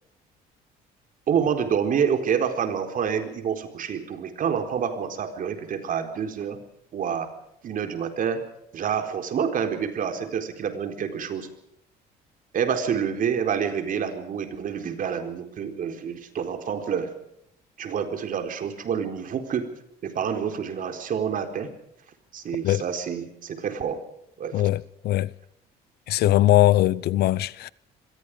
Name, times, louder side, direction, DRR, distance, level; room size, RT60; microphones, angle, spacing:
voice 1, 1.3-6.6 6.9-7.3 7.6-8.4 8.7-11.5 12.5-17.1 17.8-19.7 20.0-21.7 22.3-24.0 24.4-24.7, right 7 dB, 55° right, 4.3 m, -27 dB
voice 2, 24.5-25.3 26.1-27.7, left 15 dB, 70° left, 0.9 m, -21 dB
26.5 x 22.5 x 5.0 m
cardioid pair, 110°, 17 cm